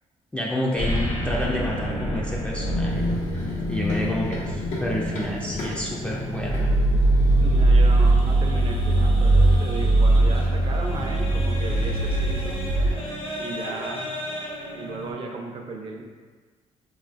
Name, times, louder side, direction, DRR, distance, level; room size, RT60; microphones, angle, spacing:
voice 1, 0.3-3.0 3.7-6.6, equal, 10° left, -4 dB, 0.3 m, -29 dB
sound 1, 0.8-15.1, equal, 45° left, 0.7 m, -32 dB
sound 2, 2.6-5.3 5.7-6.0 6.4-12.9, right 2 dB, 85° right, 0.7 m, -21 dB
Run, 2.9-12.9, left 2 dB, 90° left, 0.8 m, -36 dB
voice 2, 7.4-12.6 13.4-14.0 14.7-16.0, right 3 dB, 50° right, 1 dB, 0.5 m, -35 dB
3.6 x 2.3 x 2.4 m, 1.4 s
cardioid pair, 110°, 12 cm